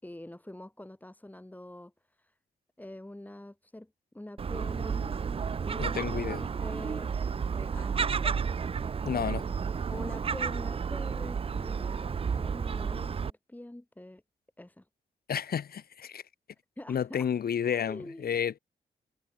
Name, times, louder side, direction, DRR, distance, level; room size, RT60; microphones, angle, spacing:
voice 1, 0.0-2.4 2.8-5.2 5.6-7.1 7.5-8.8 9.9-14.2 14.6-14.9 16.8-17.3 17.7-18.4, left 1 dB, 10° left, 4.4 m, -45 dB
Gull seagull, 4.4-13.3, right 6 dB, 35° right, 0.5 m, -32 dB
voice 2, 5.8-6.4 9.0-9.5 15.3-16.2 16.9-18.6, left 8 dB, 70° left, 2.3 m, -31 dB
cardioid pair, 75°, 17 cm